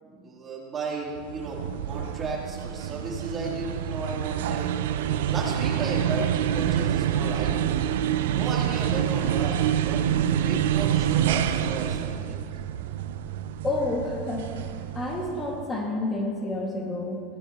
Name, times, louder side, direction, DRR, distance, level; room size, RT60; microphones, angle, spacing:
voice 1, 0.0-1.6 1.9-4.7 5.3-7.8 8.3-10.0 10.3-12.4, right 3 dB, 25° right, -3 dB, 2.9 m, -35 dB
sound 1, 1.2-15.7, right 10 dB, 80° right, 0.5 m, -27 dB
voice 2, 13.6-14.5 14.9-17.2, left 2 dB, 20° left, -1 dB, 1.8 m, -29 dB
16.0 x 15.0 x 2.9 m, 2.2 s
supercardioid pair, 115°, 0 cm